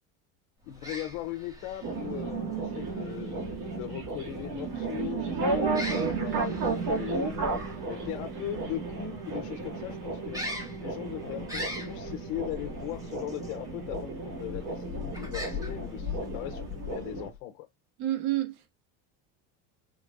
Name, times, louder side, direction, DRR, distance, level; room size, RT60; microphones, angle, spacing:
sound 1, 0.6-17.4, left 4 dB, 10° right, 1.8 m, -42 dB
voice 1, 0.7-10.4 10.8-17.7, left 13 dB, 80° left, 0.9 m, -39 dB
sound 2, 1.8-17.3, right 4 dB, 40° right, 2.3 m, -33 dB
voice 2, 15.1-15.4 18.0-18.7, right 14 dB, 60° right, 1.4 m, -31 dB
5.1 x 3.8 x 2.5 m
cardioid pair, 150°, 45 cm